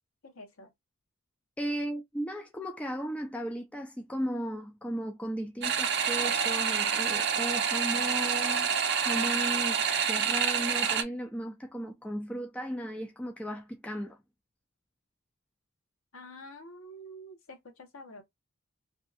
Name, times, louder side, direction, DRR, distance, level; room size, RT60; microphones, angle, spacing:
voice 1, 0.2-0.7 16.1-18.2, equal, 70° left, 0.9 m, -47 dB
voice 2, 1.6-8.7 9.0-14.2, equal, 5° left, 0.4 m, -36 dB
sound 1, 5.6-11.0, right 7 dB, 55° right, 0.6 m, -28 dB
2.7 x 2.3 x 2.4 m
head